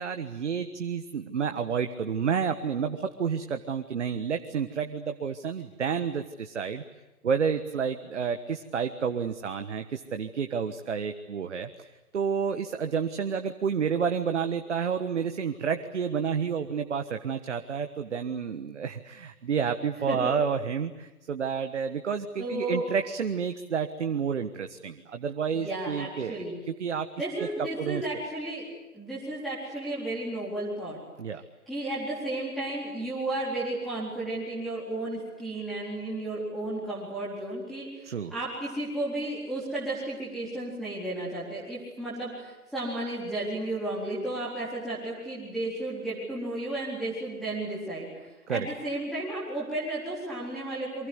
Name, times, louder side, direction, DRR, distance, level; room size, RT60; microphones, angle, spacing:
voice 1, 0.0-6.8 7.2-11.9 12.1-27.1 27.4-28.0 31.2-31.4 38.0-38.3 48.5-48.7, right 6 dB, 50° right, 7 dB, 1.5 m, -30 dB
voice 2, 22.4-22.8 25.5-26.6 27.2-28.6 28.9-31.0 31.7-48.1 48.5-51.1, right 2 dB, ahead, -10 dB, 4.2 m, -33 dB
29.0 x 24.0 x 8.2 m, 1.1 s
figure-of-eight pair, 150°, 45 cm